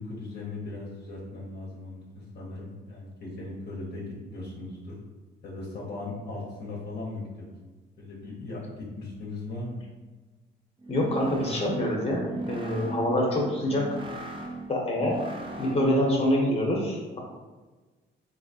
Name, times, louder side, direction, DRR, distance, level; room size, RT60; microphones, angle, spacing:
voice 1, 0.0-4.9 5.4-7.5 8.0-9.8, left 2 dB, 55° left, -4 dB, 0.7 m, -38 dB
sound 1, 10.8-16.1, right 2 dB, 25° right, 0.5 m, -37 dB
voice 2, 10.9-14.0 14.7-15.2 15.6-17.2, left 1 dB, 30° left, -2 dB, 0.9 m, -26 dB
3.1 x 2.7 x 2.7 m, 1.3 s
cardioid pair, 90°, 20 cm